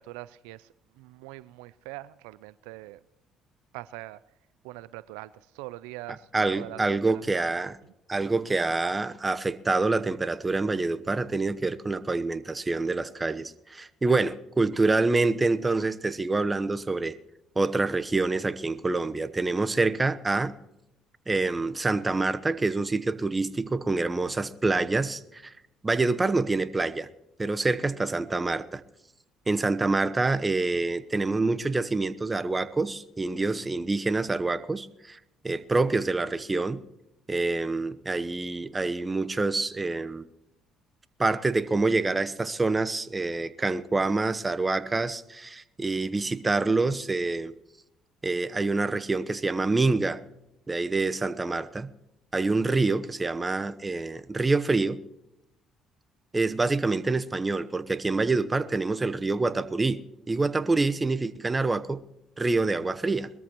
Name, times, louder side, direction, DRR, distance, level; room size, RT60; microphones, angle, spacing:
voice 1, 0.0-3.0 3.7-4.2 4.6-6.8 7.1-7.5 7.8-7.9, right 18 dB, 85° right, 0.4 m, -43 dB
voice 2, 6.3-7.8 8.1-17.2 17.5-20.5 21.3-25.5 25.8-27.1 27.4-28.8 29.5-35.2 35.4-36.8 37.3-40.3 41.2-47.5 48.2-50.2 50.7-51.9 52.3-55.0 56.3-62.0 62.4-63.3, right 3 dB, 25° right, 1.0 m, -26 dB
21.5 x 13.5 x 3.0 m
supercardioid pair, 65°, 0 cm